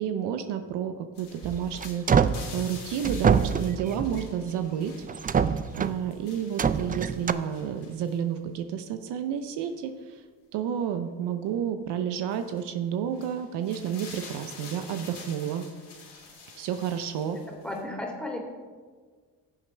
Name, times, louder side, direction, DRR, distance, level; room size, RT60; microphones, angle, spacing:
voice 1, 0.0-4.9 5.3-9.9 10.5-15.6 16.6-17.4, right 9 dB, 75° right, 8 dB, 0.8 m, -31 dB
sound 1, 1.2-8.2 9.7-9.8 12.3-12.6 13.1-17.8, left 4 dB, 70° left, 3.2 m, -47 dB
sound 2, 1.4-2.5 3.0-4.3 5.0-6.0 6.6-7.3, right 6 dB, 20° right, 0.4 m, -25 dB
voice 2, 17.3-18.4, left 1 dB, ahead, -1 dB, 2.9 m, -35 dB
16.0 x 7.2 x 3.4 m, 1.5 s
supercardioid pair, 70°, 42 cm